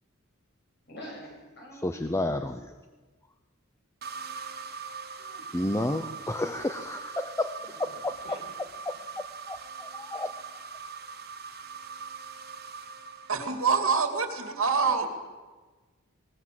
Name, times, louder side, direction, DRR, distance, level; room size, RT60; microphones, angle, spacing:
voice 1, 0.8-2.1 5.2-5.5 7.6-8.6 14.4-15.1, equal, 55° left, 0 dB, 7.4 m, -47 dB
voice 2, 1.8-2.7 5.5-7.9 8.8-9.0 9.5-10.3, left 1 dB, 15° left, 8 dB, 0.7 m, -31 dB
sound 1, 4.0-14.0, right 5 dB, 50° right, 1.6 m, -42 dB
voice 3, 13.3-15.1, right 5 dB, 80° right, 7 dB, 2.5 m, -25 dB
20.0 x 19.5 x 7.7 m, 1.3 s
head